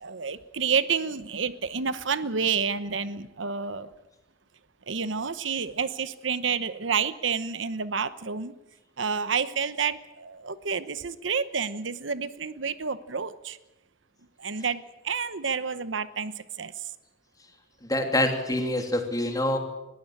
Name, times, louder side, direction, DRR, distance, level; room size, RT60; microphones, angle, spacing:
voice 1, 0.0-3.9 4.9-8.5 9.0-13.6 14.4-16.8, right 6 dB, 90° right, 14 dB, 1.0 m, -29 dB
voice 2, 17.8-19.6, left 1 dB, 20° left, 4 dB, 3.1 m, -26 dB
21.0 x 15.5 x 8.8 m, 0.98 s
head